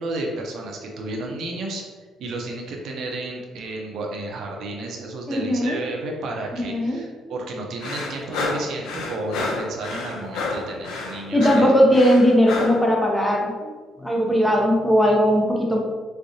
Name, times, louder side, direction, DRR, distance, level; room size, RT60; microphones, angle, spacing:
voice 1, 0.0-1.8 2.2-11.7, right 2 dB, 60° right, 1 dB, 0.6 m, -32 dB
voice 2, 5.3-5.8 6.5-7.0 11.3-13.7 14.0-15.8, equal, 5° left, -1 dB, 0.5 m, -19 dB
sound 1, 7.8-12.8, left 3 dB, 80° left, 0.6 m, -29 dB
3.6 x 3.3 x 2.7 m, 1.4 s
cardioid pair, 145°, 0 cm